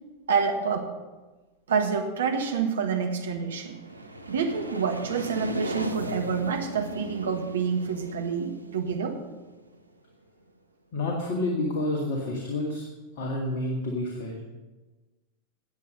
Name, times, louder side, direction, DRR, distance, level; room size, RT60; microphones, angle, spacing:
voice 1, 0.3-0.9 1.7-3.7 4.3-9.2, right 5 dB, 65° right, 4 dB, 1.7 m, -27 dB
sound 1, 3.2-9.9, right 1 dB, 85° right, 0.9 m, -38 dB
voice 2, 10.9-12.8 13.2-14.4, left 1 dB, 50° left, 0 dB, 2.1 m, -29 dB
15.5 x 9.3 x 5.4 m, 1.2 s
figure-of-eight pair, 90°, 0 cm